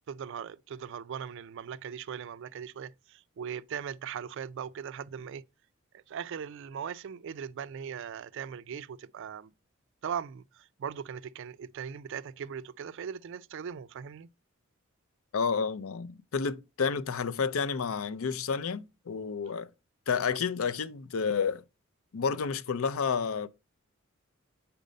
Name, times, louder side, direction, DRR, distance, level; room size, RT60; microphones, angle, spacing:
voice 1, 0.1-5.5 5.9-9.5 10.0-14.3, right 7 dB, 60° right, 0.3 m, -39 dB
voice 2, 15.3-19.7 20.1-21.6 22.1-23.5, left 5 dB, 80° left, 0.5 m, -30 dB
5.2 x 4.5 x 5.1 m
head